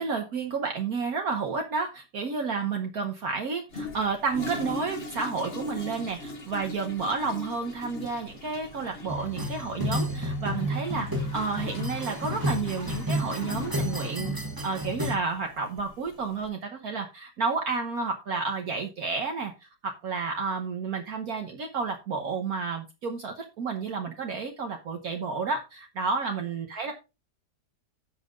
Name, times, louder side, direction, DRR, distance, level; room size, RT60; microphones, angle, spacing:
voice 1, 0.0-14.3 14.6-26.9, right 4 dB, 60° right, 3 dB, 1.5 m, -31 dB
Toilet flush, 3.7-16.5, left 2 dB, 35° left, 1.7 m, -41 dB
sound 1, 9.1-15.2, equal, 15° right, 1.5 m, -31 dB
16.0 x 5.7 x 2.5 m, 0.27 s
omnidirectional pair, 1.9 m